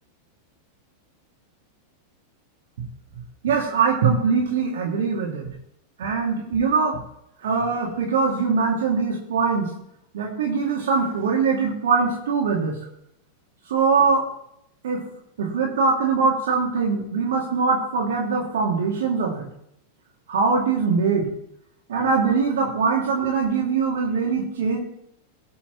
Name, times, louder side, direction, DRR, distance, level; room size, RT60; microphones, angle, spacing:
voice 1, 3.4-5.5 6.0-7.0 7.4-9.7 10.1-12.8 13.7-14.2 14.8-15.0 15.4-19.5 20.3-21.3 21.9-24.8, right 5 dB, 60° right, -2 dB, 2.5 m, -22 dB
18.5 x 7.1 x 3.1 m, 0.75 s
figure-of-eight pair, 90°, 0 cm